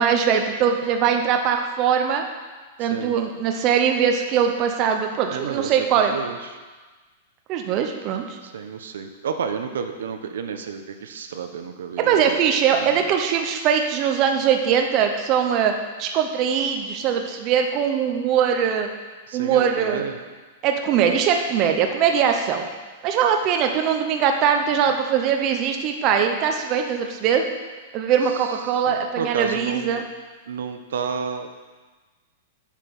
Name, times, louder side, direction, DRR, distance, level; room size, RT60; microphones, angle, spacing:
voice 1, 0.0-2.2 2.8-6.1 7.5-8.4 12.0-18.9 19.3-20.1 20.6-22.7 23.0-27.4 27.9-30.0, right 7 dB, 25° right, 4 dB, 0.6 m, -21 dB
voice 2, 2.8-3.1 5.3-6.6 8.4-12.4 12.7-13.0 19.3-20.2 28.3-30.0 30.5-31.5, right 6 dB, 85° right, 7 dB, 0.8 m, -31 dB
7.5 x 6.7 x 5.3 m, 1.3 s
supercardioid pair, 170°, 0 cm